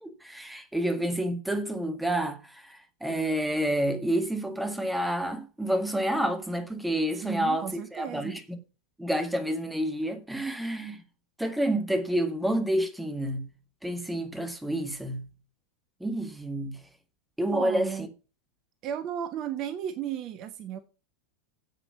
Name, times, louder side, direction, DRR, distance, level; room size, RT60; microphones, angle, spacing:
voice 1, 0.0-8.6 9.0-11.0 11.4-13.5 13.8-15.3 16.0-16.8 17.4-17.9, right 1 dB, 5° right, 1.9 m, -29 dB
voice 2, 7.2-8.4 17.5-18.1 18.8-20.8, right 9 dB, 35° right, 1.1 m, -34 dB
8.7 x 8.2 x 7.0 m
figure-of-eight pair, 90°, 0 cm